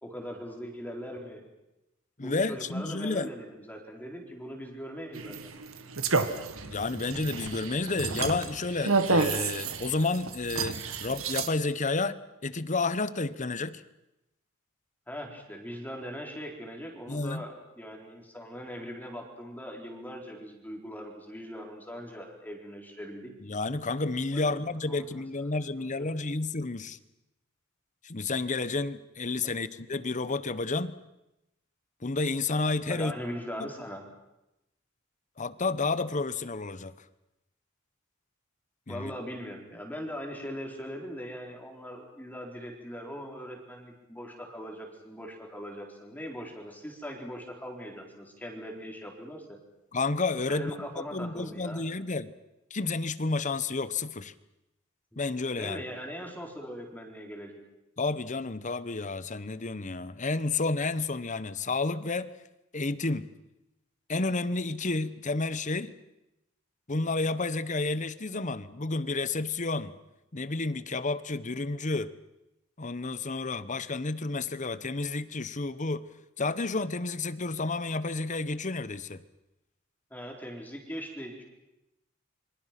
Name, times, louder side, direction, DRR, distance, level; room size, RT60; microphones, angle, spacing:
voice 1, 0.0-1.4 2.2-5.4 15.1-23.3 24.3-24.6 24.9-25.2 26.0-26.1 29.4-29.5 32.9-34.0 38.9-49.6 50.5-51.9 55.1-55.2 55.5-57.6 80.1-81.4, equal, 10° left, 4.0 m, -40 dB
voice 2, 2.2-3.3 6.7-13.8 17.1-17.5 23.4-27.0 28.0-31.0 32.0-33.1 33.6-33.7 35.4-36.9 38.9-39.1 49.9-50.8 51.1-52.3 52.7-54.3 55.2-55.8 58.0-62.3 62.7-63.3 64.1-65.9 66.9-70.0 70.3-72.1 72.8-76.1 76.4-79.2, left 3 dB, 35° left, 1.0 m, -31 dB
sound 1, 5.1-11.5, right 4 dB, 85° right, 1.9 m, -30 dB
28.0 x 25.5 x 6.0 m
head